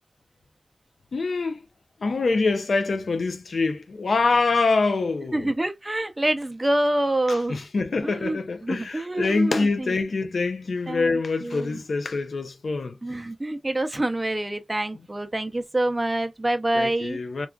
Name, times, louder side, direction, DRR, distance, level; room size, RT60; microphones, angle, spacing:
voice 1, 1.1-1.7 2.0-5.5 7.3-13.0 16.7-17.5, left 3 dB, 80° left, 0.5 m, -25 dB
voice 2, 5.3-7.6 8.0-9.9 10.9-11.8 13.0-17.2, right 1 dB, 25° right, 0.5 m, -26 dB
3.6 x 2.3 x 2.3 m
wide cardioid pair, 95°, 0 cm